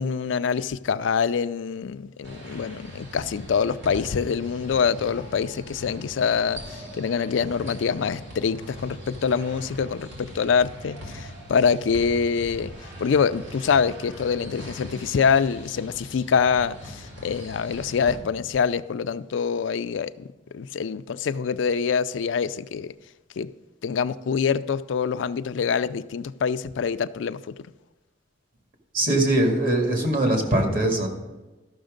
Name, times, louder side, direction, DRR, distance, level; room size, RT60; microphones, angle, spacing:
voice 1, 0.0-12.7 13.0-20.3 20.5-22.9 23.4-23.5 23.8-27.4, left 6 dB, 80° left, 0.4 m, -25 dB
sound 1, 2.2-18.1, equal, 70° right, 3.2 m, -41 dB
voice 2, 28.9-31.1, right 1 dB, 50° right, 2.1 m, -21 dB
13.0 x 6.3 x 5.1 m
head